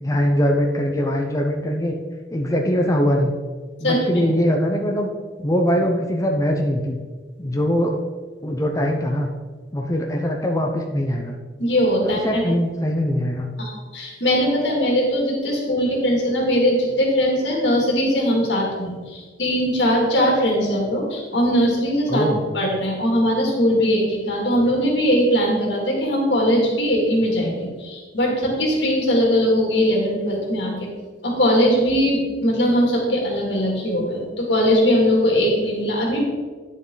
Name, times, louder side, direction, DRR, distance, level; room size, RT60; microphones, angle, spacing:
voice 1, 0.0-1.9 2.3-3.3 3.8-5.1 5.4-7.0 7.4-8.0 8.4-9.3 9.7-11.4 12.0-13.5 22.1-22.4, equal, 20° left, 2 dB, 0.8 m, -22 dB
voice 2, 3.8-4.2 11.6-12.4 13.6-22.3 22.5-30.9 31.2-36.2, equal, 90° left, -2 dB, 2.8 m, -20 dB
9.9 x 7.4 x 4.0 m, 1.4 s
head